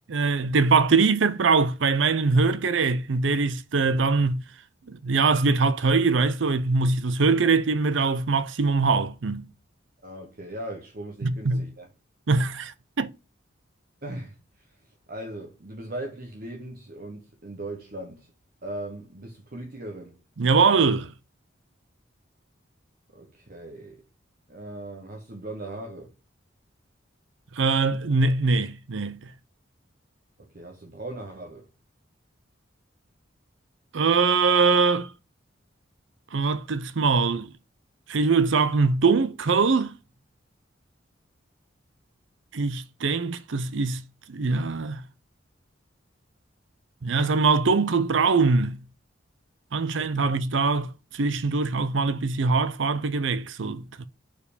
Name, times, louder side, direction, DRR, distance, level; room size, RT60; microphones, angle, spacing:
voice 1, 0.1-4.4 4.9-9.5 11.2-11.7 12.3-13.1 20.4-21.1 27.5-29.3 33.9-35.1 36.3-37.5 38.1-40.0 42.5-45.0 47.0-48.8 49.7-54.1, right 4 dB, 75° right, 0.6 m, -23 dB
voice 2, 10.0-11.9 14.0-18.3 18.6-20.2 23.1-24.0 24.5-26.1 30.4-31.7 49.9-50.2, right 1 dB, 50° right, 1.1 m, -39 dB
4.8 x 4.6 x 5.0 m
head